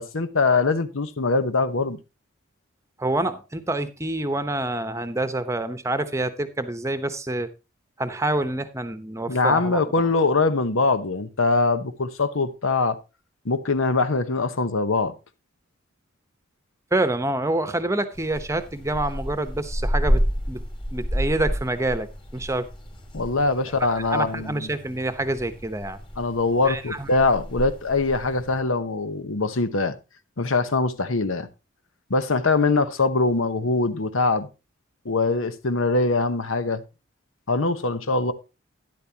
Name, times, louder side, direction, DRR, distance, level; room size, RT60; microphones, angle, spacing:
voice 1, 0.0-2.0 9.3-13.0 13.4-15.1 23.1-24.7 26.2-29.9 30.4-31.5 32.1-34.5 35.0-36.8 37.5-38.3, left 3 dB, 80° left, 1.0 m, -23 dB
voice 2, 3.0-7.5 8.0-9.8 16.9-20.6 20.9-22.7 23.8-26.0 26.6-27.1, right 2 dB, 15° right, 0.9 m, -27 dB
sound 1, 18.1-28.6, equal, 25° left, 2.6 m, -30 dB
12.0 x 10.5 x 2.9 m
head